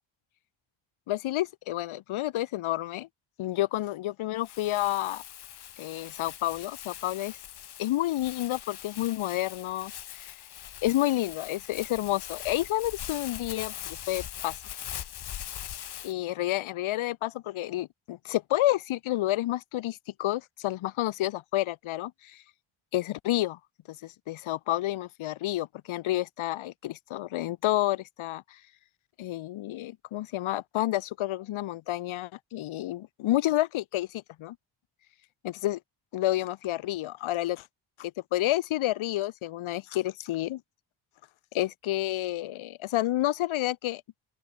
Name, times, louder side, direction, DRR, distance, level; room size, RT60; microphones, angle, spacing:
voice 1, 1.1-3.1 3.4-5.2 5.8-7.4 7.8-10.3 10.8-14.6 16.0-22.4 22.9-23.6 23.9-28.6 29.2-34.6 35.4-35.8 36.1-37.7 38.0-40.6 41.5-44.0, left 15 dB, 85° left, 1.1 m, -30 dB
Crumpling crinkling, 4.4-16.1, left 11 dB, 55° left, 1.5 m, -41 dB
open air
wide cardioid pair, 170°, 47 cm